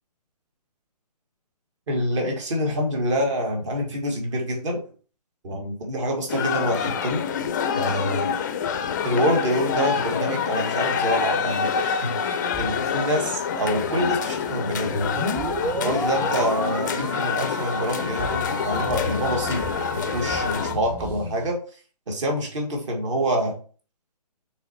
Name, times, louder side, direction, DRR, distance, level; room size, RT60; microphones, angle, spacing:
voice 1, 1.9-4.8 5.4-7.2 7.7-8.3 8.7-15.1 15.8-21.6 22.1-23.6, equal, 45° right, 1 dB, 2.0 m, -26 dB
sound 1, 6.3-20.7, left 6 dB, 30° left, 0.4 m, -27 dB
sound 2, 12.5-21.5, left 1 dB, 10° right, 0.9 m, -38 dB
sound 3, 14.9-20.6, right 1 dB, 80° right, 2.5 m, -32 dB
6.2 x 3.4 x 4.4 m, 0.40 s
figure-of-eight pair, 135°, 21 cm